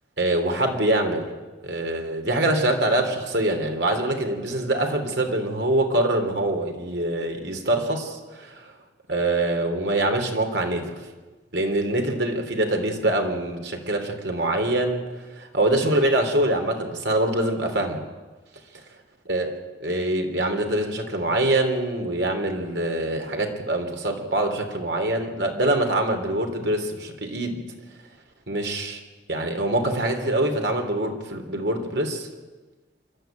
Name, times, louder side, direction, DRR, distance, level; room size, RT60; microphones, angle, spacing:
voice 1, 0.2-1.3 1.6-8.6 9.1-10.8 11.5-15.0 15.4-18.0 19.3-19.5 19.8-27.6 28.5-29.0 29.3-32.3, right 1 dB, 80° right, 4 dB, 3.4 m, -24 dB
26.5 x 12.5 x 9.2 m, 1.2 s
head